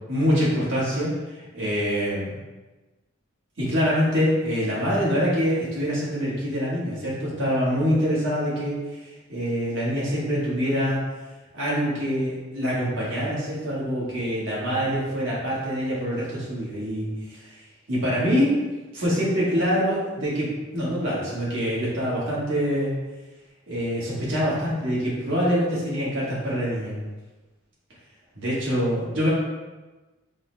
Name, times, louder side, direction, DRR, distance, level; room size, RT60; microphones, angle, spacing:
voice 1, 0.1-2.3 3.6-11.0 11.5-17.6 17.9-18.5 18.9-22.9 23.7-27.0 28.3-29.3, equal, 75° right, -7 dB, 1.4 m, -25 dB
4.0 x 2.1 x 3.9 m, 1.2 s
head